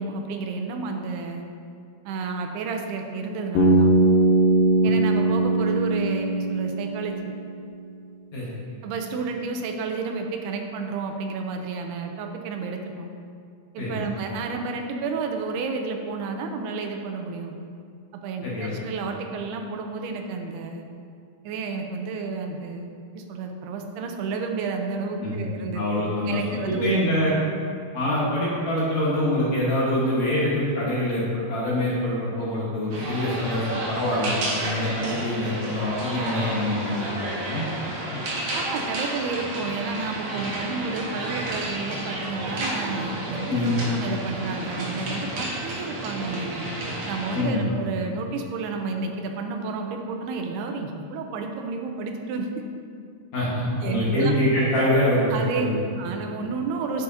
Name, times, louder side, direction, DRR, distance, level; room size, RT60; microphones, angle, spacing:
voice 1, 0.0-1.5 2.1-3.9 4.8-7.2 8.8-13.1 13.7-17.7 18.1-20.9 21.4-22.9 23.1-25.9 26.3-27.1 38.5-46.6 47.1-52.6 53.8-54.3 55.3-55.7 56.0-57.0, right 4 dB, 85° right, 4 dB, 2.7 m, -31 dB
Bass guitar, 3.6-7.5, right 2 dB, 75° left, 2.2 m, -20 dB
voice 2, 18.4-18.9 25.2-25.4 25.7-27.3 27.9-38.2 43.5-43.7 47.3-47.7 53.3-55.8, left 1 dB, 55° left, -7 dB, 2.2 m, -25 dB
sound 1, 32.9-47.4, right 1 dB, 65° right, 1.7 m, -31 dB
9.3 x 8.7 x 2.8 m, 2.4 s
omnidirectional pair, 4.6 m